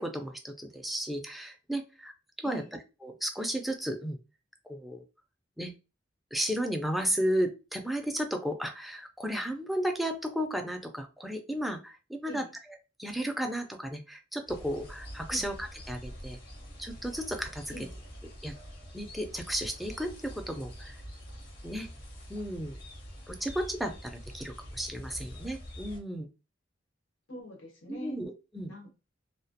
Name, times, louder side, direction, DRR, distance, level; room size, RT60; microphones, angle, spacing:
voice 1, 0.0-2.1 2.4-2.6 3.0-4.2 4.7-5.0 5.6-5.7 6.3-12.4 13.0-16.4 16.8-17.6 18.4-18.5 18.9-21.0 21.6-21.9 22.3-22.8 23.3-26.3 27.9-28.7, equal, ahead, 4 dB, 0.3 m, -34 dB
sound 1, 14.5-26.0, equal, 55° left, 0.8 m, -45 dB
voice 2, 17.7-18.0 27.3-28.2 28.7-29.0, equal, 85° left, 1 dB, 1.0 m, -43 dB
2.2 x 2.1 x 2.7 m, 0.30 s
head